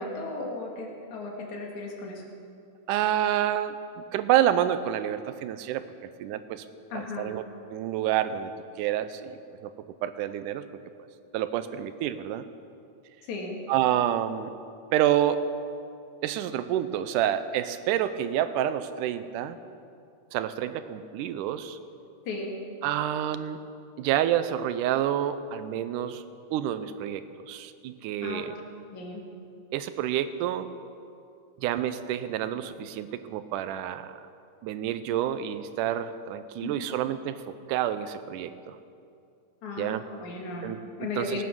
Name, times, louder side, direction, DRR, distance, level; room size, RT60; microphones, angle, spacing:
voice 1, 0.0-2.2 6.9-7.3 13.3-13.6 22.3-22.5 28.2-28.4 28.9-29.2 36.6-36.9 39.6-41.4, left 3 dB, 65° left, 0 dB, 3.3 m, -36 dB
voice 2, 2.9-5.8 6.2-6.7 6.9-7.4 7.7-8.5 8.8-9.7 10.0-10.7 11.3-12.4 13.7-14.5 14.9-15.4 16.2-19.6 20.3-21.8 22.8-23.6 24.0-26.2 26.5-28.5 29.7-30.7 31.6-34.2 34.6-37.4 37.7-38.8 39.8-40.0 40.6-41.4, right 11 dB, 85° right, 12 dB, 2.2 m, -28 dB
18.5 x 9.4 x 6.2 m, 2.5 s
omnidirectional pair, 3.6 m